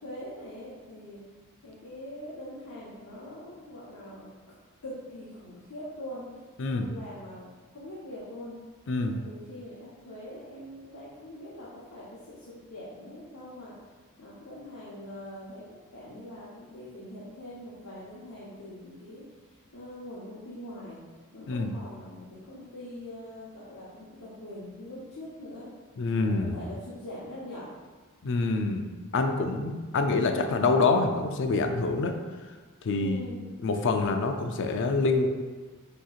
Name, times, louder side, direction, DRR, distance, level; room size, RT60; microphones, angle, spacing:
voice 1, 0.0-1.2 1.6-4.3 4.8-7.5 7.7-8.6 9.0-13.9 14.2-19.2 19.5-21.0 21.3-25.7 26.2-27.7 32.9-33.4, left 1 dB, 85° left, -9 dB, 0.9 m, -43 dB
voice 2, 26.0-26.6 28.2-28.8 29.1-32.2 32.8-33.2 33.6-35.3, left 3 dB, 55° left, 5 dB, 0.4 m, -26 dB
6.3 x 2.9 x 2.4 m, 1.4 s
head